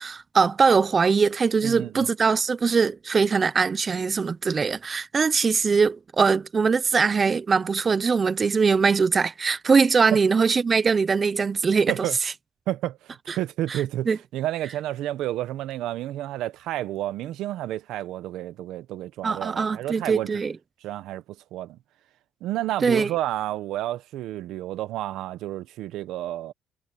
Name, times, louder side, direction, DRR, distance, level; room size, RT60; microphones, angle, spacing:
voice 1, 0.0-12.3 13.3-13.4 13.7-14.2 19.2-20.5 22.8-23.1, right 5 dB, 35° right, 0.8 m, -22 dB
voice 2, 1.6-2.1 10.1-10.2 11.9-12.2 12.7-20.3 20.8-21.2 21.5-21.8 22.4-26.5, right 14 dB, 80° right, 1.2 m, -30 dB
cardioid pair, 100°, 0 cm